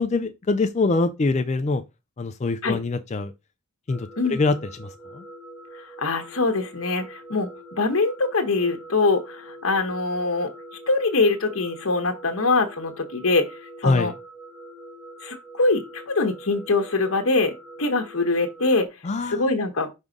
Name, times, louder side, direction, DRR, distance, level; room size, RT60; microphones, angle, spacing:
voice 1, 0.0-1.8 2.2-3.3 3.9-5.2 13.8-14.1 19.0-19.5, left 3 dB, 30° left, 0.4 m, -24 dB
sound 1, 3.9-18.9, right 1 dB, 15° right, 1.3 m, -44 dB
voice 2, 5.7-7.5 7.8-10.5 10.9-13.5 13.8-14.1 15.2-18.9 19.2-19.9, left 3 dB, 65° left, 1.0 m, -23 dB
5.5 x 3.5 x 5.1 m
head